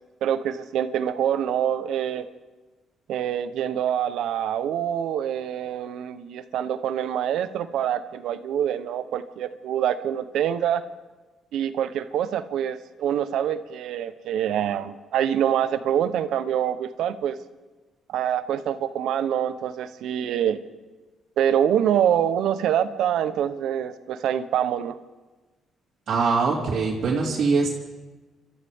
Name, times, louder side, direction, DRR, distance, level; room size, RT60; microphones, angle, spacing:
voice 1, 0.2-2.3 3.1-10.8 11.5-17.4 18.1-20.6 21.4-25.0, right 9 dB, 80° right, 12 dB, 0.9 m, -25 dB
voice 2, 26.1-27.7, right 4 dB, 65° right, -5 dB, 2.8 m, -22 dB
29.5 x 13.0 x 3.6 m, 1.2 s
cardioid pair, 90°, 0 cm